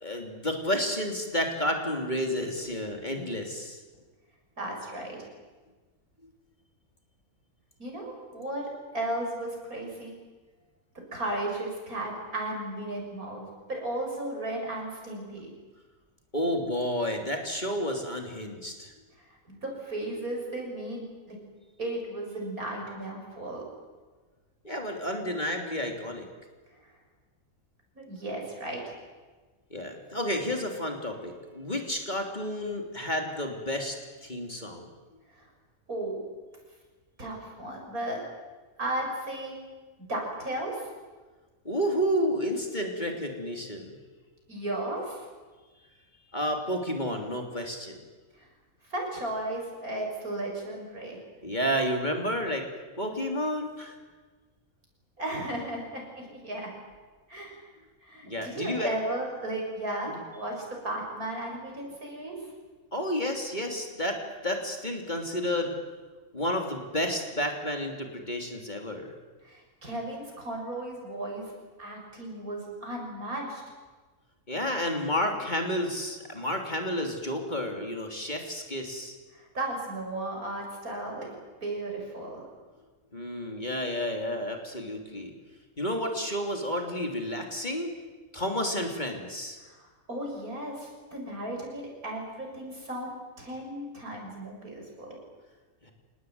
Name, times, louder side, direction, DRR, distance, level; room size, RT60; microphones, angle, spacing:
voice 1, 0.0-3.8 16.3-18.9 24.6-26.3 29.7-34.9 41.6-43.9 46.3-48.0 51.4-52.6 53.0-54.0 58.2-58.9 62.9-65.8 66.3-69.1 74.5-79.1 83.1-85.3 85.8-87.9 88.3-89.6 95.8-95.9, equal, 30° left, 3 dB, 3.3 m, -31 dB
voice 2, 4.6-5.2 7.8-10.1 11.1-15.5 19.2-21.4 21.8-23.6 28.0-28.9 35.4-35.5 35.9-36.2 37.2-38.2 38.8-39.6 40.0-40.9 44.5-45.3 48.4-48.5 48.9-51.2 55.2-56.7 57.3-57.6 58.0-62.4 69.4-71.5 71.8-73.6 79.3-81.3 81.6-82.5 89.6-95.2, right 1 dB, 80° right, 0 dB, 7.5 m, -35 dB
26.5 x 19.5 x 9.5 m, 1.3 s
omnidirectional pair, 1.5 m